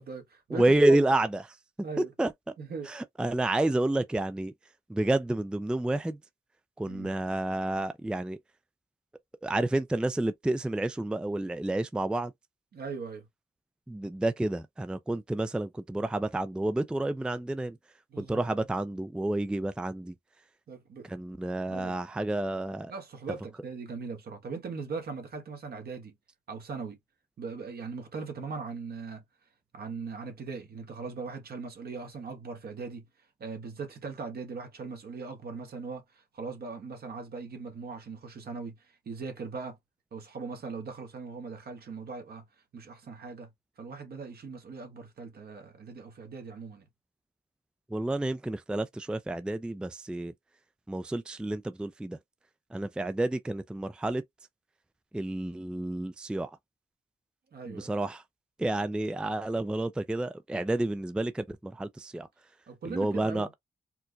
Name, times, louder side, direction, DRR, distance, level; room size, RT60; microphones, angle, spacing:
voice 1, 0.0-1.1 1.8-2.1 2.6-2.9 6.9-7.1 12.7-13.3 18.1-18.7 20.7-21.2 21.7-22.0 22.9-26.1 26.5-27.0 27.4-29.2 29.7-33.1 33.4-39.8 40.1-42.4 42.7-43.5 43.8-46.9 57.5-57.9 62.7-63.5, right 4 dB, 70° right, 1.3 m, -40 dB
voice 2, 0.5-1.4 2.2-2.3 2.9-4.5 4.9-6.2 6.8-8.4 9.4-12.3 13.9-17.8 18.2-20.1 21.1-22.9 47.9-50.3 50.9-52.2 52.7-54.2 55.1-56.5 57.7-58.2 58.6-62.3 62.8-63.5, right 2 dB, 5° right, 0.3 m, -29 dB
4.4 x 2.1 x 2.6 m
cardioid pair, 90°, 17 cm